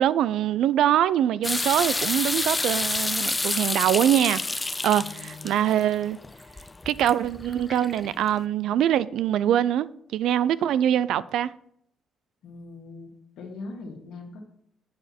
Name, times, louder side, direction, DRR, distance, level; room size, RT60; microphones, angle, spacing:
voice 1, 0.0-4.4 4.8-6.2 6.9-9.9 10.1-11.5, right 11 dB, 75° right, 0.3 m, -23 dB
sound 1, 1.4-8.3, left 2 dB, 20° left, 0.4 m, -29 dB
voice 2, 4.9-5.7 12.4-13.1 13.4-14.4, left 3 dB, 75° left, 1.9 m, -41 dB
8.0 x 6.7 x 4.3 m
supercardioid pair, 70°, 0 cm